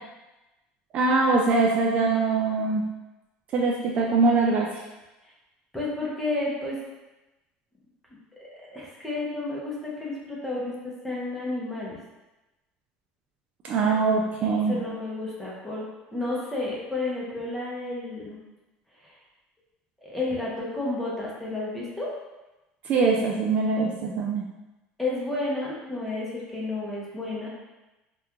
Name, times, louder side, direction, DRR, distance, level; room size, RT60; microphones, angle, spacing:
voice 1, 0.9-2.8 3.5-4.8 13.6-14.8 22.9-24.4, right 3 dB, 35° right, -1 dB, 0.3 m, -23 dB
voice 2, 5.7-6.8 8.4-12.0 13.8-14.0 14.7-15.8 16.1-18.4 19.0-19.1 20.0-22.1 25.0-27.5, left 2 dB, 5° left, -6 dB, 0.7 m, -31 dB
2.9 x 2.3 x 3.5 m, 1.0 s
cardioid pair, 165°, 4 cm